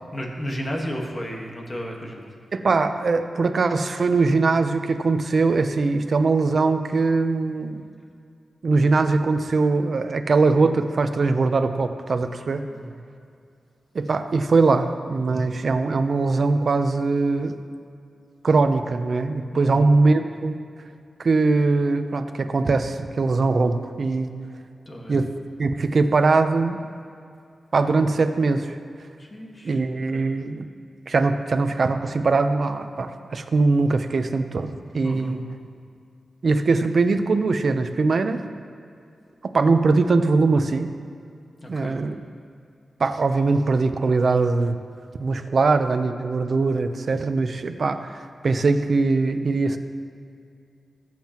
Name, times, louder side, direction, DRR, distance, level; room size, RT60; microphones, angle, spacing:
voice 1, 0.1-2.3 12.6-12.9 19.5-19.9 24.8-25.2 29.2-29.8 30.1-30.3 35.0-35.4 41.6-42.0, equal, 25° left, 0 dB, 1.5 m, -33 dB
voice 2, 2.5-7.8 8.6-12.6 13.9-17.6 18.4-20.6 21.2-24.3 25.1-25.3 25.6-26.8 27.7-28.8 29.6-30.6 31.1-35.4 36.4-38.4 39.4-40.9 41.7-42.2 43.0-44.8 45.2-49.8, right 3 dB, 50° right, 8 dB, 0.6 m, -21 dB
20.0 x 7.5 x 3.0 m, 2.4 s
wide cardioid pair, 150°, 0 cm